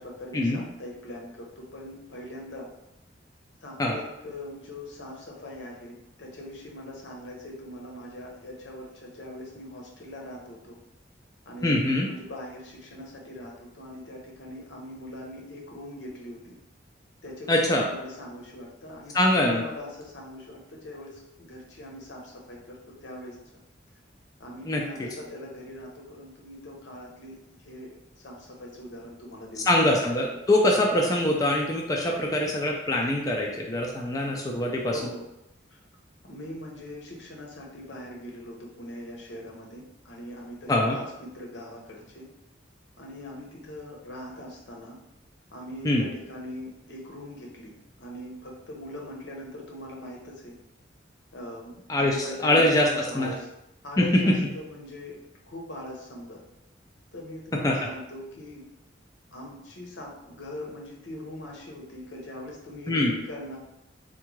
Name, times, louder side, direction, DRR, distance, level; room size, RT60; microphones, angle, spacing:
voice 1, 0.0-2.7 3.6-10.8 11.5-16.6 17.2-23.4 24.4-29.6 34.9-35.3 35.7-35.8 36.2-42.3 43.0-45.0 45.5-50.5 51.3-53.5 53.8-55.2 55.5-56.4 57.1-58.6 59.3-63.6, left 1 dB, 75° left, -1 dB, 0.8 m, -41 dB
voice 2, 11.6-12.1 17.5-17.9 19.1-19.6 24.7-24.8 29.7-35.0 40.7-41.0 45.8-46.1 51.9-52.9 53.1-53.3 54.0-54.4 57.6-57.7 62.9-63.1, left 1 dB, 20° left, -1 dB, 0.4 m, -23 dB
3.6 x 2.2 x 3.0 m, 0.87 s
head